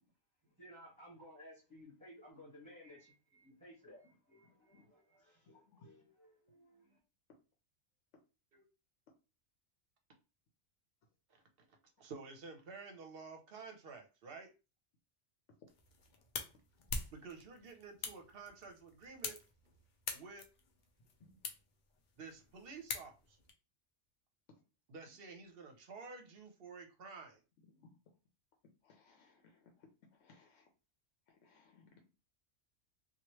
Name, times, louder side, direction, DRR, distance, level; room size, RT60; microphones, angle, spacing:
voice 1, 0.4-7.0, equal, 20° right, -6 dB, 1.0 m, -58 dB
voice 2, 11.7-14.5 17.1-19.4 20.1-20.5 22.2-23.4 24.9-27.4, right 4 dB, 60° right, 5 dB, 0.8 m, -51 dB
sound 1, 15.7-23.5, left 4 dB, 55° left, 0.6 m, -46 dB
voice 3, 28.8-29.4 30.2-30.6 31.4-31.9, left 4 dB, 80° left, 2 dB, 1.0 m, -64 dB
3.0 x 2.4 x 2.9 m, 0.31 s
omnidirectional pair, 1.2 m